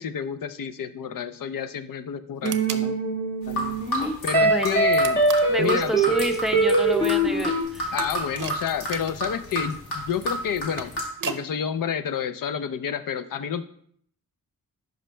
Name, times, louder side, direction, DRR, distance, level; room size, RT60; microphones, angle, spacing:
voice 1, 0.0-3.0 3.5-3.8 4.2-5.2 5.6-6.0 7.9-10.9 11.3-13.6, left 8 dB, 65° left, 12 dB, 0.6 m, -29 dB
sound 1, 2.4-7.6, right 2 dB, 30° left, 1.8 m, -22 dB
sound 2, 2.4-2.9 5.0-5.6 8.0-9.4 10.5-11.5, right 7 dB, 60° right, 0.6 m, -35 dB
sound 3, 3.4-11.0, equal, 90° left, 1.7 m, -32 dB
voice 2, 4.4-4.9 5.5-7.9, equal, ahead, 5 dB, 0.6 m, -29 dB
11.0 x 5.1 x 2.2 m, 0.64 s
cardioid pair, 65°, 36 cm